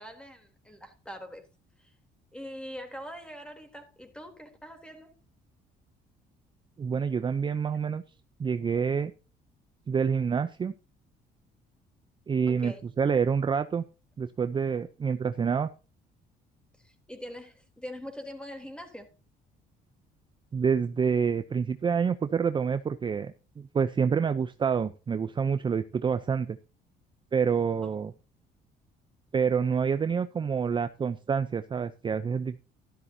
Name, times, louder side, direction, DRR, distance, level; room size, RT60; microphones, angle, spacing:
voice 1, 0.0-1.4 1.8-1.9 2.3-5.1 12.5-12.8 16.8-19.1 27.8-27.9, equal, 5° left, 3.5 m, -43 dB
voice 2, 6.8-8.0 8.4-9.1 9.9-10.7 12.3-13.8 14.2-15.7 20.5-26.6 27.3-28.1 29.3-32.6, right 6 dB, 30° right, 0.6 m, -27 dB
12.5 x 12.5 x 2.8 m
cardioid pair, 110°, 17 cm